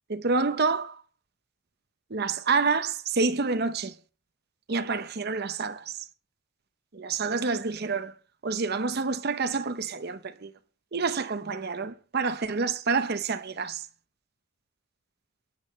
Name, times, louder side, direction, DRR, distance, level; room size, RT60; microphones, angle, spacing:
voice 1, 0.1-1.0 2.1-3.9 4.7-6.1 6.9-8.1 8.4-10.5 10.9-13.9, right 4 dB, 45° right, 0.7 m, -28 dB
23.5 x 10.5 x 3.2 m
head